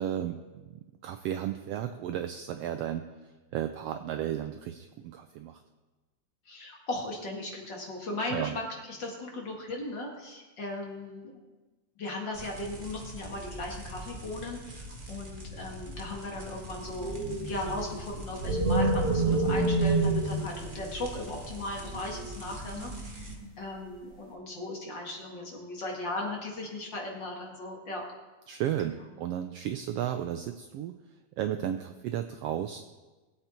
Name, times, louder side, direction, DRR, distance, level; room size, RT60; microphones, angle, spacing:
voice 1, 0.0-5.6 8.3-8.6 19.3-19.8 28.5-31.0 31.4-32.8, right 11 dB, 90° right, 8 dB, 1.3 m, -34 dB
voice 2, 6.5-11.3 12.0-17.2 17.4-28.0 28.9-29.1, left 2 dB, 40° left, -1 dB, 2.3 m, -37 dB
sound 1, 12.3-23.3, equal, 25° right, 1.1 m, -43 dB
sound 2, 16.8-21.2 21.8-23.5, right 2 dB, 45° right, 3.8 m, -28 dB
20.5 x 8.0 x 4.4 m, 1.2 s
omnidirectional pair, 3.4 m